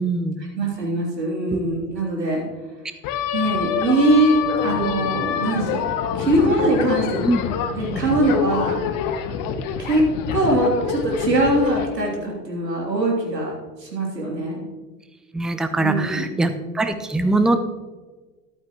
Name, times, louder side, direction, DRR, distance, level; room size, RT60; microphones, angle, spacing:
voice 1, 0.0-0.4 1.5-1.6 7.2-7.4 7.9-8.0 15.3-17.6, right 2 dB, ahead, 9 dB, 0.4 m, -22 dB
voice 2, 0.5-2.5 3.3-5.9 6.1-7.2 7.7-8.8 9.8-10.0 10.3-13.5 13.8-14.7 15.8-16.3, right 1 dB, 85° right, -2 dB, 3.3 m, -22 dB
sound 1, 3.0-11.8, left 7 dB, 40° left, 1.1 m, -26 dB
13.5 x 11.0 x 3.1 m, 1.3 s
figure-of-eight pair, 85°, 49 cm